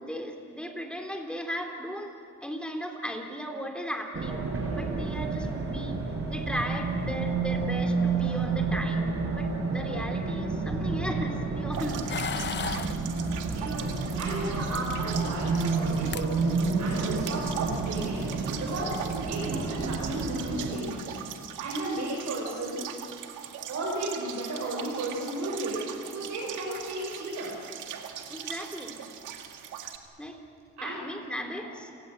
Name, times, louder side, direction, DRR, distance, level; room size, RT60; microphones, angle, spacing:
voice 1, 0.0-2.1 2.4-6.0 6.3-12.1 28.3-29.0 30.2-30.4 30.8-31.9, equal, 5° left, 3 dB, 3.7 m, -36 dB
Race car auto racing, 4.1-20.7, right 4 dB, 45° right, 5.4 m, -30 dB
sound 1, 11.7-30.0, right 9 dB, 85° right, 2.0 m, -40 dB
sound 2, 12.1-13.0 14.3-15.0 15.8-15.9 16.1-16.3 16.7-17.0, left 7 dB, 35° left, 0.7 m, -35 dB
voice 2, 13.5-13.9 14.2-16.5 16.8-18.3 18.6-21.1 21.6-22.8 23.7-27.6 27.9-28.0 30.8-31.0 31.5-31.9, right 1 dB, 65° right, -4 dB, 6.3 m, -34 dB
29.5 x 18.5 x 8.2 m, 2.4 s
cardioid pair, 90°, 30 cm